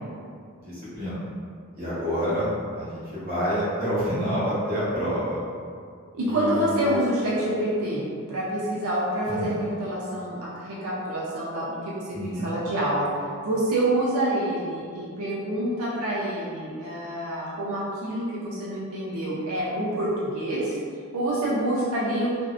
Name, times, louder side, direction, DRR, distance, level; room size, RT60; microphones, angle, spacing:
voice 1, 0.6-1.2 1.7-5.4 6.2-7.0 9.3-9.5 12.1-12.4, equal, 40° right, -11 dB, 0.8 m, -28 dB
voice 2, 6.1-13.1 13.4-20.8 21.1-22.3, right 1 dB, 85° right, -7 dB, 0.5 m, -27 dB
2.5 x 2.0 x 2.4 m, 2.2 s
head